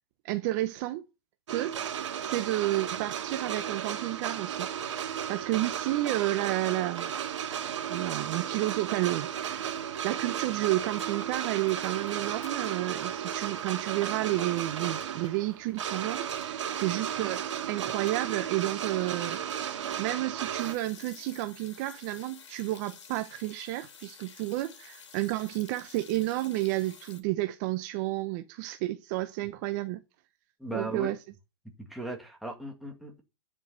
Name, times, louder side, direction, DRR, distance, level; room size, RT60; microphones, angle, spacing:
voice 1, 0.2-1.0 1.5-4.7 5.0-7.1 7.9-19.4 20.0-30.0 30.7-31.2, right 17 dB, 35° right, 0.8 m, -31 dB
sound 1, 1.5-20.7, right 9 dB, 70° right, 2.3 m, -34 dB
sound 2, 9.7-9.8 10.0-12.7 13.0-19.5 20.6-27.2, left 6 dB, 75° left, 2.9 m, -53 dB
voice 2, 30.6-31.1 31.6-33.2, right 1 dB, ahead, 2.0 m, -37 dB
9.7 x 7.3 x 5.5 m
hypercardioid pair, 150°, 16 cm